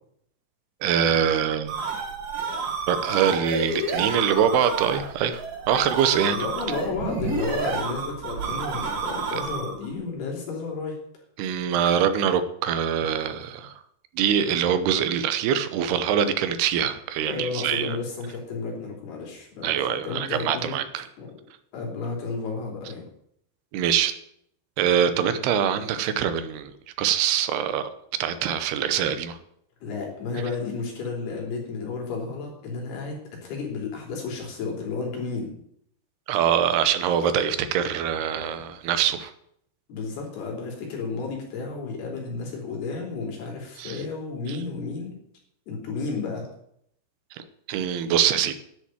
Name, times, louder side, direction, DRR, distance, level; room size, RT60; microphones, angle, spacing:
voice 1, 0.8-1.8 2.9-6.4 11.4-13.7 14.2-18.0 19.6-21.0 23.7-24.1 24.8-27.9 28.2-29.4 36.3-39.3 43.8-44.0 44.5-44.6 47.3-48.6, right 8 dB, 85° right, 11 dB, 2.9 m, -24 dB
sound 1, 1.4-9.9, right 4 dB, 55° right, 4.9 m, -30 dB
voice 2, 6.3-11.0 17.3-20.7 21.2-21.3 21.7-23.0 29.8-35.5 39.9-45.2 45.7-46.4, left 4 dB, 70° left, 0 dB, 5.0 m, -32 dB
10.5 x 6.8 x 8.9 m, 0.70 s
omnidirectional pair, 4.7 m